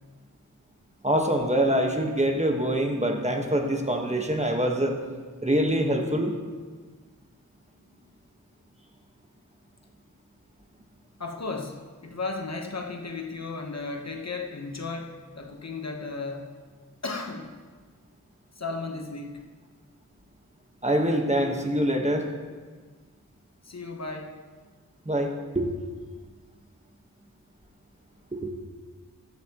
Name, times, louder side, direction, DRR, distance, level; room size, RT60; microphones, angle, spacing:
voice 1, 1.0-5.0 5.4-6.3 20.8-22.3 25.0-25.7 28.3-28.4, right 1 dB, 20° right, 2 dB, 1.3 m, -24 dB
voice 2, 11.2-16.5 17.0-17.5 18.6-19.5 23.6-24.4, left 3 dB, 50° left, 2 dB, 1.1 m, -35 dB
14.5 x 11.0 x 3.0 m, 1.4 s
wide cardioid pair, 65°, 34 cm